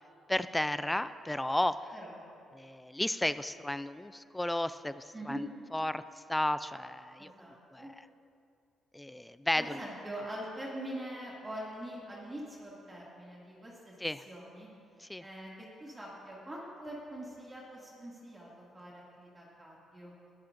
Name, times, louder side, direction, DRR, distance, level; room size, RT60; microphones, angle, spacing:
voice 1, 0.3-1.9 2.6-5.5 5.7-6.0 6.3-7.3 7.7-7.9 8.9-9.6 14.0-14.2 15.0-15.2, left 1 dB, 10° left, 13 dB, 0.3 m, -33 dB
voice 2, 1.9-2.2 5.1-5.4 7.2-7.9 9.5-14.7 15.2-20.1, right 1 dB, 20° right, -5 dB, 2.3 m, -44 dB
20.5 x 12.0 x 2.6 m, 2.6 s
cardioid pair, 110°, 0 cm